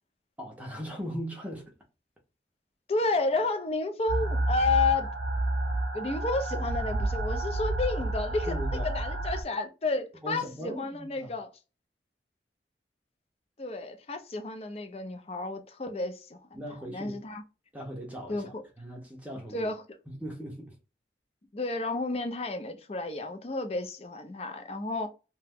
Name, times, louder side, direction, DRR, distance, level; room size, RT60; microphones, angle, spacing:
voice 1, 0.4-1.7 8.5-9.0 10.2-11.3 16.5-17.2 17.7-19.7 20.1-20.8, equal, 10° right, 0.6 m, -39 dB
voice 2, 2.9-5.1 5.9-8.6 8.8-11.5 13.6-17.4 18.3-18.6 19.5-19.8 21.5-25.1, left 3 dB, 35° left, 0.5 m, -31 dB
sound 1, 4.1-9.4, right 2 dB, 75° right, 0.7 m, -30 dB
2.9 x 2.2 x 3.4 m
head